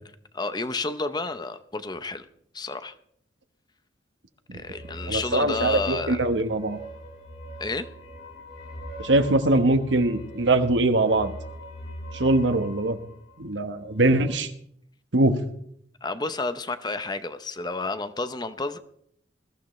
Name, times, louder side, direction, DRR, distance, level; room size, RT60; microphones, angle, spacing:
voice 1, 0.3-2.3 2.5-2.9 4.5-6.2 7.6-7.9 16.0-18.8, left 3 dB, 20° left, 11 dB, 0.7 m, -30 dB
sound 1, 4.5-14.3, right 1 dB, 70° left, 6.7 m, -41 dB
voice 2, 5.1-6.8 9.0-11.3 12.1-13.0 13.4-14.5 15.1-15.4, right 2 dB, 75° right, 9 dB, 1.2 m, -22 dB
21.0 x 14.0 x 3.2 m, 0.67 s
head